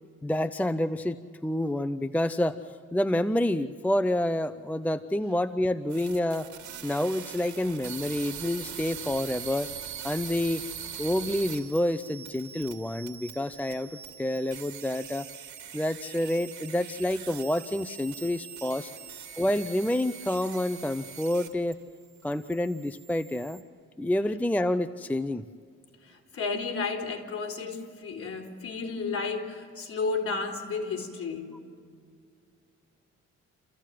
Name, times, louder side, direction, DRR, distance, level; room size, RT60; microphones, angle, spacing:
voice 1, 0.2-2.6 2.9-6.5 6.8-9.7 10.0-10.6 11.0-15.3 15.7-18.9 19.4-21.8 22.2-23.6 24.0-25.4, left 1 dB, 5° left, 0.6 m, -28 dB
sound 1, 5.9-21.7 22.0-23.6, right 8 dB, 70° right, 2.5 m, -42 dB
voice 2, 26.0-31.5, left 4 dB, 50° left, 4.2 m, -32 dB
29.0 x 15.5 x 7.6 m
cardioid pair, 90°, 30 cm